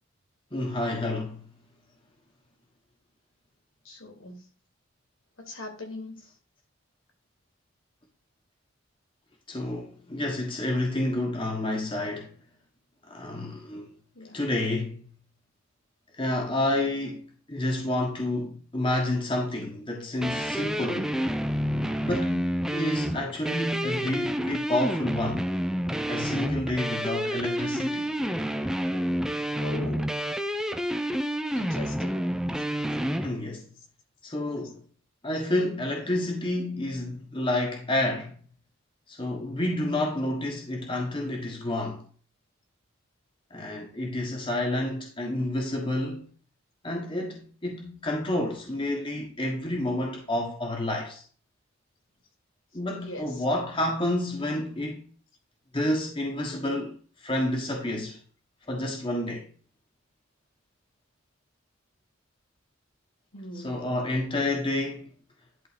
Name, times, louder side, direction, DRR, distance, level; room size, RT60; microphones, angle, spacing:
voice 1, 0.5-1.5 9.5-12.3 13.1-14.0 14.3-15.0 16.2-21.1 22.0-25.4 26.0-28.1 33.2-33.7 34.2-34.8 35.2-38.3 39.1-42.0 43.5-46.3 46.8-51.2 52.7-55.1 55.7-58.2 58.7-59.5 63.6-65.1, left 1 dB, 25° left, 1.4 m, -29 dB
voice 2, 3.8-4.4 5.4-6.3 14.1-14.4 28.9-29.0 29.5-30.1 31.5-32.3 53.0-53.4 63.3-63.8, left 2 dB, 70° left, 3.2 m, -40 dB
sound 1, 20.2-33.3, equal, 5° right, 0.6 m, -29 dB
11.0 x 3.9 x 5.1 m
head